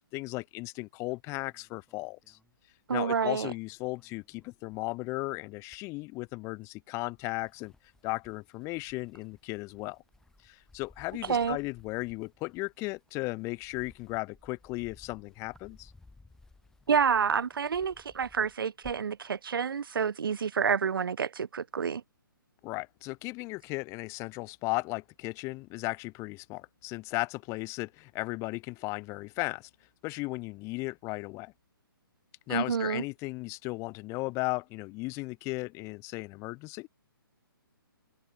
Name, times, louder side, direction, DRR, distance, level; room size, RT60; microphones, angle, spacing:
voice 1, 0.1-2.4 2.9-7.7 8.0-10.0 10.4-15.9 22.6-29.7 30.0-31.5 32.5-36.9, left 23 dB, 25° left, 1.3 m, -36 dB
sound 1, 1.1-3.2 3.5-5.1 5.5-6.5 7.0-19.3, left 3 dB, 5° left, 1.9 m, -59 dB
voice 2, 2.9-3.5 11.3-11.6 16.9-22.0 32.5-33.0, right 6 dB, 70° right, 0.9 m, -28 dB
figure-of-eight pair, 135°, 12 cm